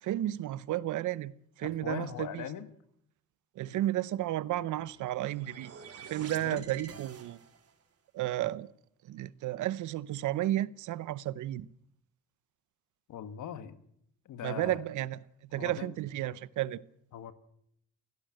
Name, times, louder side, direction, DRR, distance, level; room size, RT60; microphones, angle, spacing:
voice 1, 0.0-2.4 3.6-5.7 6.0-7.4 8.1-8.7 9.0-11.7 14.4-15.2 15.5-16.8, right 14 dB, 80° right, 0.8 m, -33 dB
voice 2, 1.6-2.7 3.7-3.8 6.2-6.6 13.1-13.8 14.3-14.8 15.5-15.9 16.2-16.3 17.1-17.3, left 9 dB, 80° left, 1.8 m, -41 dB
sound 1, 4.8-7.8, right 6 dB, 55° right, 3.4 m, -49 dB
23.5 x 16.5 x 7.8 m
cardioid pair, 90°, 30 cm